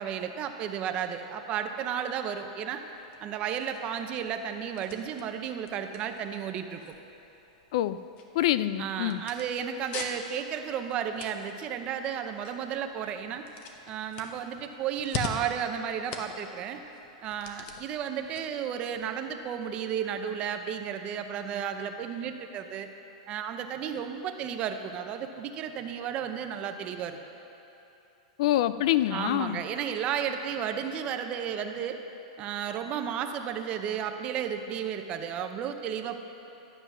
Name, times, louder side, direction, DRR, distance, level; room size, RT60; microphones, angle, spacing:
voice 1, 0.0-2.8 3.2-6.8 8.8-13.4 13.9-16.8 17.2-22.9 23.3-27.2 29.1-32.0 32.4-36.2, right 8 dB, 30° right, 7 dB, 0.7 m, -33 dB
sound 1, 2.8-19.7, left 6 dB, 35° left, 1.0 m, -45 dB
voice 2, 8.3-9.2 28.4-29.6, left 13 dB, 55° left, 14 dB, 0.3 m, -26 dB
12.0 x 7.8 x 6.1 m, 3.0 s
supercardioid pair, 155°, 4 cm